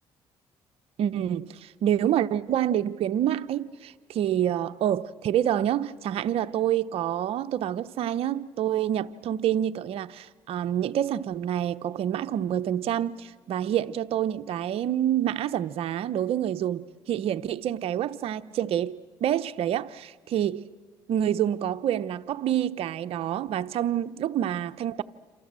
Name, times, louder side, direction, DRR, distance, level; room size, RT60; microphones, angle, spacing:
voice 1, 1.0-20.7 21.1-25.0, right 10 dB, 70° right, 0.8 m, -27 dB
28.0 x 26.5 x 7.6 m
supercardioid pair, 75°, 10 cm